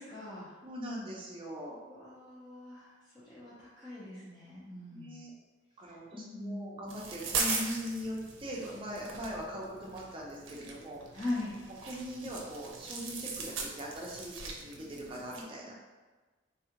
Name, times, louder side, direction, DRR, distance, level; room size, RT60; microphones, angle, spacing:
voice 1, 0.0-0.6 1.9-3.0 3.2-5.2 6.1-6.7 11.1-11.5, left 2 dB, 20° left, -10 dB, 0.6 m, -41 dB
voice 2, 0.6-1.8 4.9-5.3 5.8-11.0 11.8-15.8, equal, 25° right, -3 dB, 0.5 m, -41 dB
sound 1, 6.9-15.4, right 4 dB, 85° right, 0.5 m, -40 dB
3.4 x 2.3 x 2.8 m, 1.3 s
head